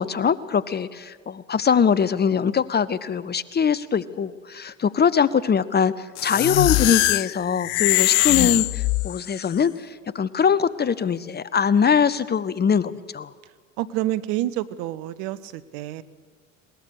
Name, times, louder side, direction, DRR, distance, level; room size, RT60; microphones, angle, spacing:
voice 1, 0.0-13.3, left 7 dB, 25° left, 16 dB, 0.8 m, -22 dB
sound 1, 6.2-9.4, left 21 dB, 60° left, 0.5 m, -21 dB
voice 2, 13.8-16.0, right 14 dB, 60° right, 15 dB, 1.0 m, -28 dB
21.0 x 19.5 x 6.5 m, 1.5 s
hypercardioid pair, 65°, 38 cm